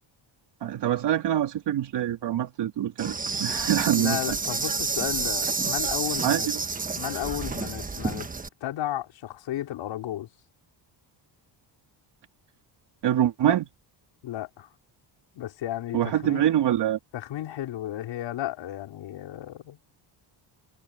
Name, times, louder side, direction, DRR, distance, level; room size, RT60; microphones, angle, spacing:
voice 1, 0.6-4.4 6.2-6.6 13.0-13.7 15.9-17.0, right 11 dB, 70° right, 3.2 m, -25 dB
Insect, 3.0-8.5, right 4 dB, 20° right, 1.3 m, -29 dB
voice 2, 4.0-6.5 7.0-8.3 8.6-10.3 14.2-14.7 15.3-16.4 17.1-19.8, left 13 dB, 80° left, 4.7 m, -33 dB
cardioid pair, 125°, 44 cm